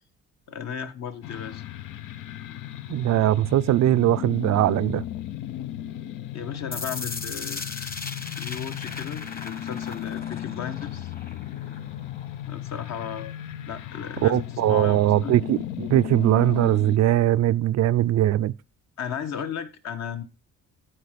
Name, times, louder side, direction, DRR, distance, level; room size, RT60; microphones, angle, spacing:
voice 1, 0.5-1.6 6.3-7.9 8.3-11.1 12.5-13.4 13.7-15.3 19.0-20.2, left 7 dB, 60° left, 1.2 m, -35 dB
sound 1, 1.2-17.0, left 12 dB, 80° left, 0.6 m, -36 dB
voice 2, 2.9-5.0 14.2-18.5, right 13 dB, 60° right, 0.4 m, -21 dB
sound 2, 6.7-12.7, left 4 dB, 30° left, 1.2 m, -38 dB
12.5 x 4.6 x 5.1 m
cardioid pair, 90°, 30 cm